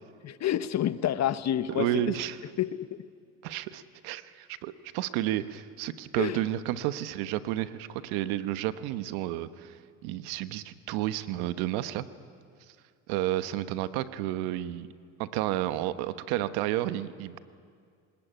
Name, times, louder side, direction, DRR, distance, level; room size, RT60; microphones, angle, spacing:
voice 1, 0.2-2.0 2.6-3.0 6.2-6.4, left 11 dB, 45° left, 14 dB, 1.0 m, -29 dB
voice 2, 1.7-2.4 3.4-12.1 13.1-14.9 15.2-17.4, right 14 dB, 80° right, 13 dB, 1.2 m, -31 dB
24.5 x 20.5 x 9.1 m, 2.2 s
supercardioid pair, 95°, 38 cm